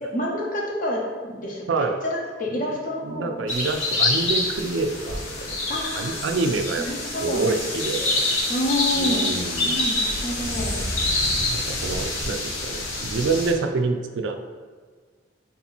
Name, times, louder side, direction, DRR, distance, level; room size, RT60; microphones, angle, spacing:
voice 1, 0.0-3.4 5.7-6.2 6.8-7.4 8.5-10.9, left 1 dB, 45° left, -2 dB, 0.8 m, -28 dB
voice 2, 3.0-5.6 5.9-8.2 8.9-9.9 11.3-14.3, right 3 dB, 70° right, 5 dB, 0.4 m, -27 dB
sound 1, 3.5-13.5, left 2 dB, 80° left, 0.9 m, -26 dB
3.9 x 2.9 x 4.1 m, 1.5 s
head